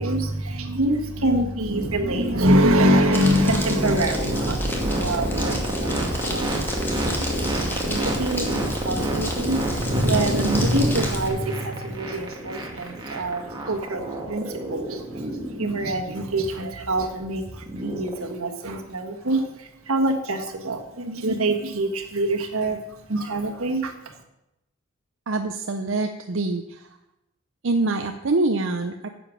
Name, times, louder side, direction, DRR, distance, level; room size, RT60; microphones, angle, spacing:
voice 1, 0.0-6.5 7.1-7.3 7.8-24.1, right 1 dB, 80° right, 4 dB, 1.5 m, -25 dB
sound 1, 1.7-18.2, right 1 dB, 20° right, 2.0 m, -29 dB
Crumpling crinkling, 3.1-11.3, left 1 dB, 10° left, 1.7 m, -32 dB
sound 2, 4.2-11.2, equal, 40° right, 4.7 m, -35 dB
voice 2, 25.3-26.8 27.6-29.1, right 2 dB, 65° right, 5 dB, 0.7 m, -25 dB
10.0 x 7.8 x 6.3 m, 0.92 s
head